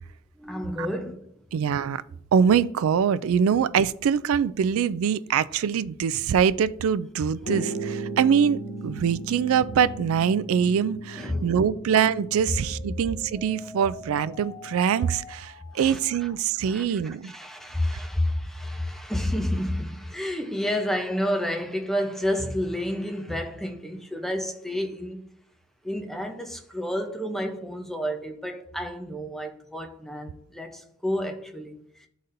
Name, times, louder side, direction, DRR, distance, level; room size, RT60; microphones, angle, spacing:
voice 1, 0.4-1.2 11.2-11.5 15.7-16.0 16.6-16.8 17.2-25.2 25.8-31.8, left 1 dB, ahead, 0.6 m, -30 dB
voice 2, 1.5-2.0 2.3-17.3 17.9-18.0, right 7 dB, 70° right, 0.3 m, -24 dB
sound 1, 7.4-15.1, right 2 dB, 80° left, 1.1 m, -37 dB
sound 2, 10.3-16.3, left 2 dB, 35° left, 2.9 m, -46 dB
12.0 x 4.0 x 2.6 m
head